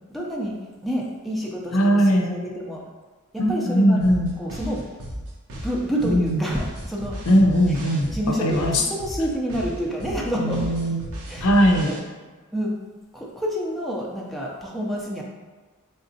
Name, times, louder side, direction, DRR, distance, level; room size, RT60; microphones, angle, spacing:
voice 1, 0.1-0.5 0.8-2.8 3.3-4.0 4.4-4.8 5.5-7.2 7.7-7.8 8.1-10.6 11.3-11.5 11.8-12.0 12.5-12.7 13.1-15.2, equal, ahead, -3 dB, 0.5 m, -28 dB
voice 2, 1.7-2.3 3.4-4.3 6.0-6.4 7.3-8.1 8.4-8.8 10.4-11.0 11.4-11.9, equal, 70° left, 1 dB, 0.5 m, -19 dB
sound 1, 4.0-12.0, equal, 85° right, 0.8 m, -35 dB
4.0 x 3.4 x 2.7 m, 1.3 s
head